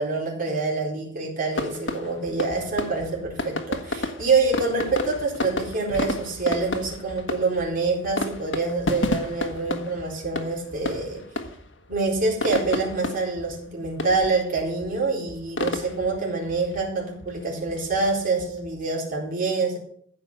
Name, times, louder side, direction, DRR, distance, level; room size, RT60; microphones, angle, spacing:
voice 1, 0.0-11.2 11.9-19.8, right 3 dB, 45° right, -1 dB, 4.3 m, -26 dB
sound 1, 1.5-19.1, left 2 dB, 75° left, 1.5 m, -32 dB
15.0 x 5.8 x 8.3 m, 0.63 s
head